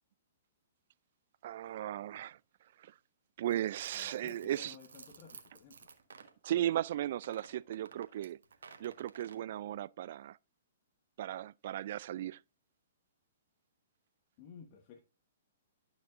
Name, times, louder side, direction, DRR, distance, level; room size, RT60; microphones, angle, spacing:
voice 1, 1.4-2.4 2.8-2.9 3.4-4.7 6.4-8.4 8.8-10.4 11.2-12.4, right 12 dB, 55° right, 0.3 m, -36 dB
sound 1, 3.5-6.3 6.8-6.9 7.2-9.4, right 5 dB, 80° right, 1.3 m, -54 dB
voice 2, 3.9-5.9 14.4-15.0, left 6 dB, 40° left, 1.3 m, -54 dB
12.0 x 6.1 x 2.5 m
hypercardioid pair, 125°, 0 cm